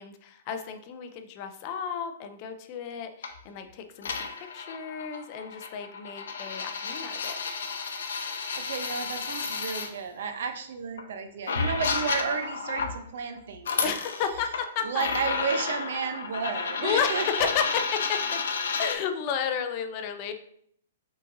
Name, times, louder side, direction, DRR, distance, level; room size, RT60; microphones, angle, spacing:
voice 1, 0.0-4.3 4.5-7.4 13.8-15.1 16.6-18.4 18.8-20.3, left 7 dB, 30° left, 7 dB, 0.4 m, -32 dB
sound 1, 3.2-3.4 4.0-9.9 11.0-11.1 11.5-13.0 13.5-14.7 15.0-19.0, left 5 dB, 85° left, 0.6 m, -32 dB
voice 2, 8.6-13.9 14.8-17.5, right 5 dB, 65° right, 7 dB, 0.6 m, -32 dB
5.4 x 3.8 x 2.6 m, 0.66 s
hypercardioid pair, 165°, 0 cm